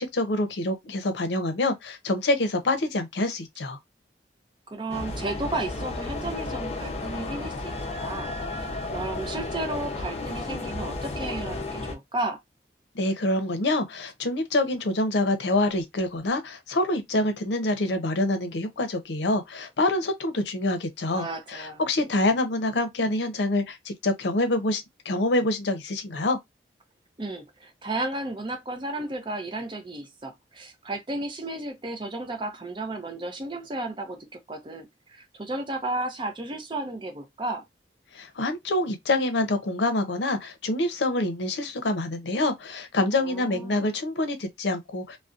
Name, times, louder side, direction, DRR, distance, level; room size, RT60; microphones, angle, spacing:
voice 1, 0.0-3.8 12.9-26.4 38.1-45.2, left 2 dB, 80° left, 0.6 m, -26 dB
voice 2, 4.7-12.4 21.1-22.2 27.2-37.6 43.1-43.9, right 2 dB, 30° right, 0.5 m, -33 dB
sound 1, 4.9-11.9, left 2 dB, 35° left, 0.5 m, -33 dB
2.6 x 2.0 x 2.4 m
head